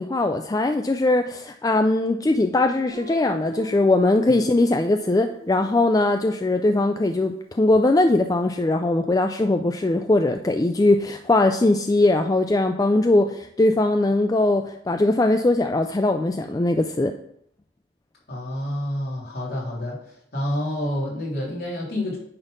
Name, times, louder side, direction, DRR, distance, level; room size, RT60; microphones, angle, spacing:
voice 1, 0.0-17.1, left 2 dB, 20° left, 6 dB, 0.3 m, -20 dB
Guitar, 2.9-7.6, right 1 dB, 60° right, 2.0 m, -42 dB
voice 2, 18.3-22.2, left 1 dB, 60° left, -6 dB, 3.5 m, -28 dB
9.6 x 4.1 x 5.2 m, 0.71 s
head